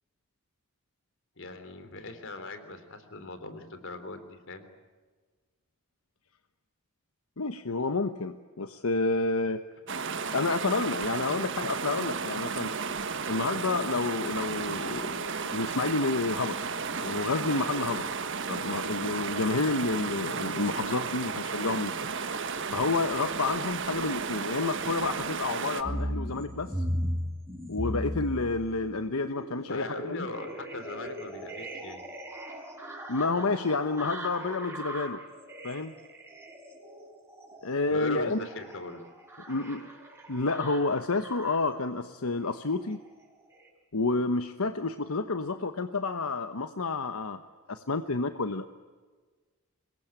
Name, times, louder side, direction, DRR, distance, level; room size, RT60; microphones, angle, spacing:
voice 1, 1.4-4.7 29.7-32.0 37.9-39.1, left 2 dB, 60° left, 9 dB, 3.5 m, -39 dB
voice 2, 7.4-9.6 10.3-12.7 13.3-16.6 17.0-18.1 18.5-21.9 22.7-26.8 27.7-30.3 33.1-35.2 35.6-35.9 37.6-38.5 39.5-39.9 40.3-43.0 43.9-47.4 47.7-48.6, left 3 dB, 85° left, 9 dB, 1.1 m, -29 dB
sound 1, 9.9-25.8, right 5 dB, 60° right, 1.6 m, -33 dB
sound 2, 25.8-41.8 42.4-43.1 43.5-43.7, equal, 10° right, 5.2 m, -38 dB
25.5 x 22.0 x 8.9 m, 1.4 s
head